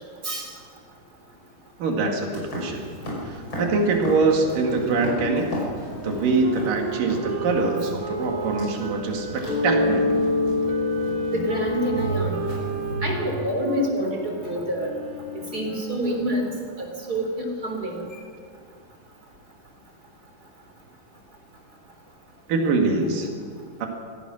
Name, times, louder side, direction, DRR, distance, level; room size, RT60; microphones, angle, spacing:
voice 1, 1.8-2.9 3.2-5.6 6.0-10.1 22.5-23.3 23.8-23.9, right 3 dB, 80° right, 2 dB, 3.9 m, -24 dB
sound 1, 2.3-12.9, left 1 dB, 35° left, 6.4 m, -37 dB
Wind instrument woodwind instrument, 4.1-10.0 10.7-16.5, right 4 dB, 45° right, 3.0 m, -35 dB
Mallet percussion, 9.5-15.0, left 2 dB, 60° left, 5.5 m, -27 dB
voice 2, 11.3-12.4 12.9-14.9 15.5-16.5 17.1-18.2, right 1 dB, 30° right, 1 dB, 3.8 m, -27 dB
26.0 x 16.5 x 6.4 m, 2.1 s
omnidirectional pair, 3.8 m